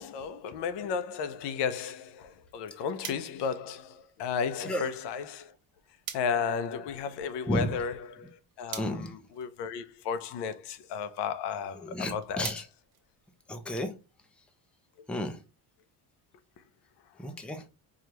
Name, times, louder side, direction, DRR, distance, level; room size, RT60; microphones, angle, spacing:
voice 1, 0.0-5.5 6.1-12.6, left 6 dB, 75° left, 0.7 m, -34 dB
sound 1, 3.0-13.8, right 9 dB, 90° right, 1.1 m, -49 dB
voice 2, 8.8-9.1 11.8-12.6 13.5-13.9 15.1-15.4 17.2-17.6, equal, 5° left, 0.5 m, -32 dB
4.8 x 2.4 x 2.9 m
cardioid pair, 135°, 42 cm